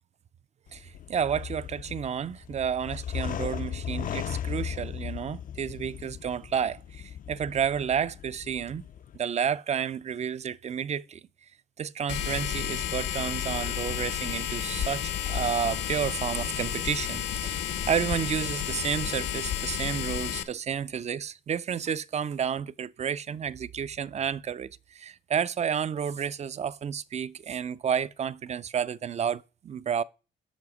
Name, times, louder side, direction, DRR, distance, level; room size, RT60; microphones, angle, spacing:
sound 1, 0.7-9.2, left 9 dB, 45° left, 0.4 m, -37 dB
voice 1, 0.7-8.8 9.1-11.2 11.8-30.0, right 8 dB, 35° right, 0.4 m, -31 dB
sound 2, 12.1-20.4, left 10 dB, 65° left, 0.8 m, -31 dB
7.1 x 5.7 x 4.8 m
cardioid pair, 90°, 20 cm